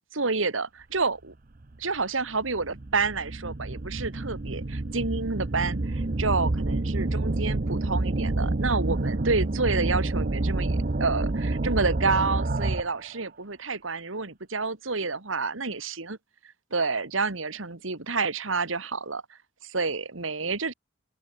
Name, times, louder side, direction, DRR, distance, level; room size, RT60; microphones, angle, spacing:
voice 1, 0.1-1.3 1.8-16.2 16.7-19.2 19.6-20.7, right 4 dB, 80° right, 2.2 m, -29 dB
sound 1, 1.6-1.7 2.4-13.1, right 2 dB, 45° right, 0.8 m, -28 dB
open air
head